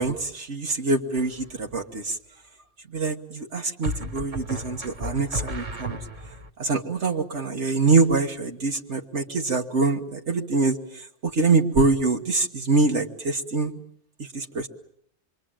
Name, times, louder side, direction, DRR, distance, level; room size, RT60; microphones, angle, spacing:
voice 1, 0.0-2.2 2.9-6.0 6.6-13.8 14.2-14.7, right 3 dB, 80° right, 2 dB, 1.8 m, -24 dB
sound 1, 1.2-1.6 3.8-6.5, right 1 dB, 30° right, 1.3 m, -33 dB
27.0 x 23.0 x 8.9 m, 0.67 s
omnidirectional pair, 1.2 m